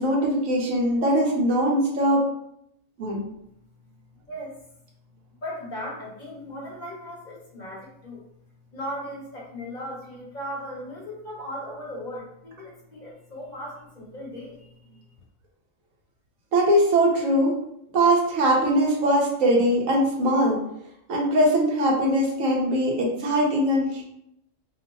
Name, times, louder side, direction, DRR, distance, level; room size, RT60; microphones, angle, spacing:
voice 1, 0.0-2.3 3.0-3.2 16.5-17.6 17.9-20.6 21.1-24.0, right 1 dB, 70° right, -1 dB, 1.2 m, -21 dB
voice 2, 5.4-8.2 8.7-15.1, equal, 35° left, -4 dB, 1.1 m, -37 dB
3.0 x 2.1 x 4.0 m, 0.75 s
omnidirectional pair, 1.5 m